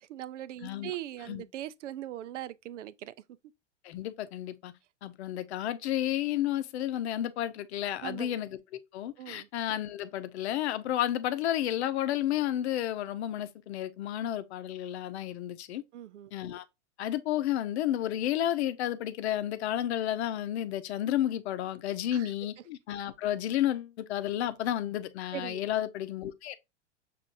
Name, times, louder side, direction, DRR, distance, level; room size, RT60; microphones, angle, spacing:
voice 1, 0.0-3.1 8.0-8.3 9.2-9.5 15.9-16.3 22.1-22.3 25.3-25.6, right 12 dB, 75° right, 0.5 m, -40 dB
voice 2, 3.8-4.7 5.0-8.6 8.9-15.8 16.3-16.6 17.0-26.6, left 12 dB, 65° left, 0.7 m, -31 dB
6.2 x 2.6 x 2.5 m
hypercardioid pair, 110°, 36 cm